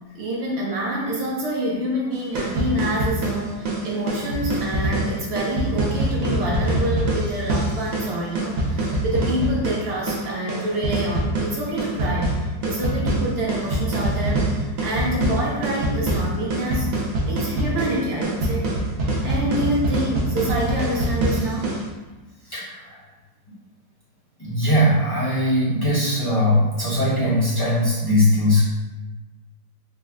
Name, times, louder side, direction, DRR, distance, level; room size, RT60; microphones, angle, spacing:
voice 1, 0.1-16.9 17.3-18.7 19.2-21.7, right 1 dB, 90° right, -4 dB, 0.5 m, -27 dB
sound 1, 2.1-21.9, right 1 dB, 65° right, 1.0 m, -24 dB
voice 2, 22.4-23.0 24.4-28.6, left 1 dB, 20° left, -10 dB, 0.6 m, -20 dB
3.2 x 2.1 x 3.5 m, 1.1 s
omnidirectional pair, 1.7 m